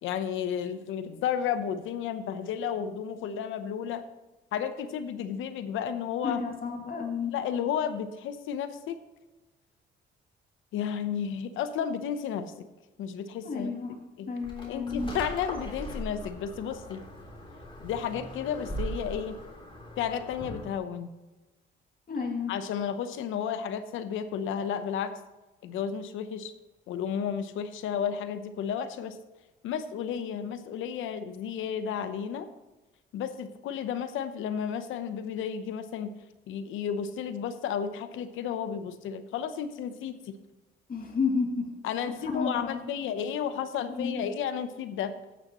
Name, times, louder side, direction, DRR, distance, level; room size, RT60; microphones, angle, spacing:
voice 1, 0.0-4.0 4.5-6.4 7.3-9.0 10.7-12.7 13.0-13.7 14.2-14.3 14.7-17.0 17.8-19.4 20.0-21.1 22.5-25.1 25.6-26.5 26.9-29.2 29.6-32.5 33.1-36.1 36.5-40.3 41.8-45.1, left 8 dB, 85° left, 11 dB, 0.8 m, -32 dB
voice 2, 6.2-7.3 13.4-14.0 14.3-15.1 22.1-22.5 40.9-41.7 42.2-42.8 43.9-44.3, left 5 dB, 45° left, 1 dB, 2.5 m, -31 dB
sound 1, 14.4-20.8, equal, 25° left, 3.3 m, -40 dB
13.5 x 9.4 x 3.0 m, 1.1 s
cardioid pair, 90°, 20 cm